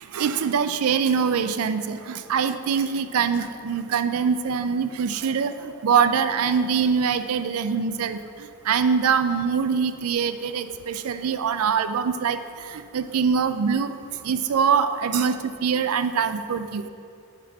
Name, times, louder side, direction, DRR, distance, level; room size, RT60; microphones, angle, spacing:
voice 1, 0.1-8.2 8.7-12.4 12.7-13.9 14.2-16.8, right 6 dB, 80° right, 10 dB, 0.4 m, -23 dB
11.0 x 3.7 x 6.9 m, 2.5 s
head